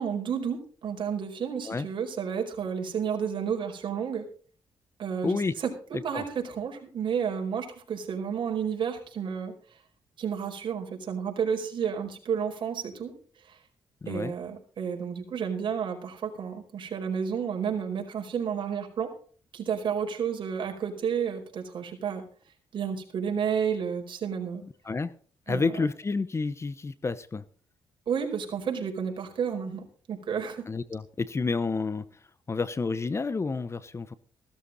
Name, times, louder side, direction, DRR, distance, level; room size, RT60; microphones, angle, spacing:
voice 1, 0.0-4.2 5.0-5.7 6.0-9.5 10.2-13.1 13.4-13.6 14.1-19.1 19.5-22.2 22.7-24.6 25.5-25.7 28.1-30.7, right 7 dB, 60° right, 2 dB, 4.8 m, -31 dB
voice 2, 5.2-5.5 6.1-6.2 14.0-14.3 24.8-25.1 25.5-27.4 30.7-32.1 32.5-34.1, left 4 dB, 30° left, 16 dB, 0.9 m, -29 dB
16.0 x 13.0 x 4.1 m, 0.43 s
cardioid pair, 85°, 9 cm